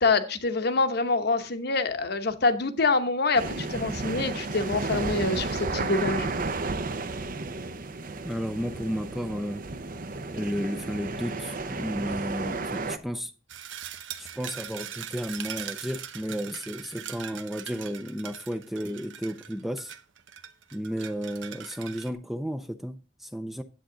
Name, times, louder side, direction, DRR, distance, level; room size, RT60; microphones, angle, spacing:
voice 1, 0.0-6.3, left 3 dB, 60° left, 1.0 m, -26 dB
sound 1, 3.3-13.0, right 3 dB, 45° right, 0.7 m, -32 dB
voice 2, 8.2-9.6 10.3-13.3 14.2-19.9 20.7-23.6, equal, ahead, 0.5 m, -33 dB
sound 2, 13.5-22.1, right 9 dB, 90° right, 0.9 m, -41 dB
10.0 x 8.0 x 3.8 m
head